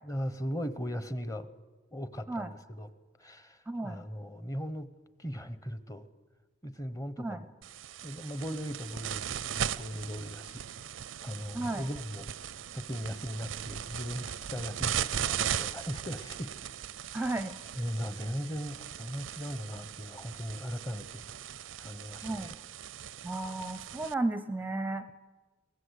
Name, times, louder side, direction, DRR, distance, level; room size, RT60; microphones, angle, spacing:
voice 1, 0.0-1.5 1.9-2.9 3.2-4.9 5.2-6.1 6.6-7.5 8.0-10.7 11.2-12.3 12.7-16.5 17.7-21.2 21.8-22.5, equal, 20° left, 13 dB, 0.9 m, -38 dB
voice 2, 3.7-4.0 7.2-7.4 11.5-11.9 17.1-17.6 22.2-22.5 23.2-25.1, right 2 dB, 10° right, 12 dB, 0.6 m, -33 dB
sound 1, 7.6-24.1, right 9 dB, 90° right, 0.6 m, -38 dB
23.0 x 18.0 x 8.2 m, 1.3 s
head